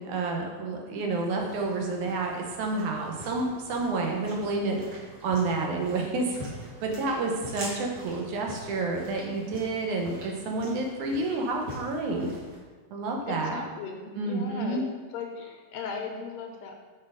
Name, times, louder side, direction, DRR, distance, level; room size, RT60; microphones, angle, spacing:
voice 1, 0.0-4.8 5.2-12.3 12.9-13.6 14.2-14.8, right 3 dB, 85° right, 1 dB, 2.4 m, -29 dB
sound 1, 1.1-12.6, right 1 dB, 50° right, 2.2 m, -44 dB
voice 2, 13.3-14.8 15.1-16.8, left 5 dB, 80° left, 3 dB, 1.8 m, -37 dB
6.4 x 4.3 x 4.9 m, 1.5 s
omnidirectional pair, 3.4 m